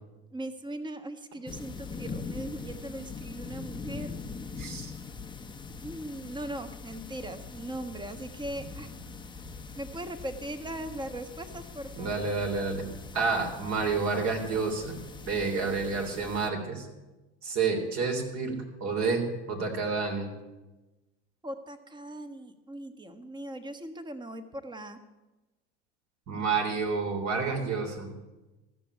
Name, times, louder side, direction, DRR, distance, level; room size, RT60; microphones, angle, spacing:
voice 1, 0.3-4.2 5.8-8.9 9.7-12.1 21.4-25.0, right 1 dB, 15° right, 8 dB, 1.3 m, -39 dB
sound 1, 1.5-16.5, left 4 dB, 15° left, 0.9 m, -42 dB
voice 2, 4.6-4.9 12.0-12.8 13.1-15.0 15.3-16.9 17.4-20.3 26.3-28.1, right 4 dB, 55° right, 2 dB, 3.5 m, -29 dB
14.0 x 7.0 x 9.6 m, 1.1 s
hypercardioid pair, 85°, 34 cm